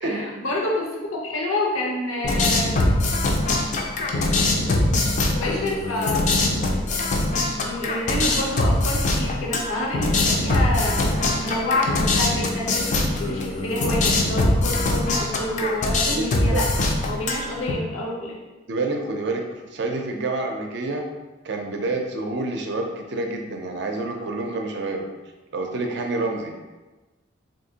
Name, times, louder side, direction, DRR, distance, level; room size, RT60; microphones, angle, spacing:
voice 1, 0.0-2.7 5.3-6.2 7.4-18.4, left 1 dB, 85° left, -2 dB, 0.7 m, -28 dB
sound 1, 2.2-17.7, left 2 dB, 35° left, 0.3 m, -22 dB
voice 2, 16.1-16.7 18.7-19.4 19.7-21.0 21.4-25.1 25.5-26.5, right 2 dB, 55° right, 3 dB, 0.4 m, -28 dB
3.6 x 2.6 x 2.7 m, 1.2 s
head